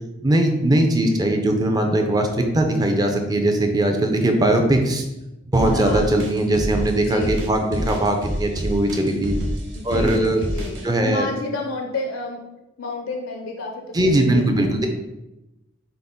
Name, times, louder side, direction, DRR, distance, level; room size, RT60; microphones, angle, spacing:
voice 1, 0.2-5.1 5.5-9.4 9.8-10.4 10.8-11.3 13.9-14.9, right 1 dB, 20° right, 4 dB, 0.5 m, -20 dB
sound 1, 5.5-10.8, equal, 65° right, 0.7 m, -27 dB
voice 2, 5.6-6.2 6.9-7.5 9.7-12.4 12.8-14.9, left 2 dB, 80° left, 2 dB, 0.5 m, -31 dB
5.7 x 2.1 x 3.8 m, 0.98 s
head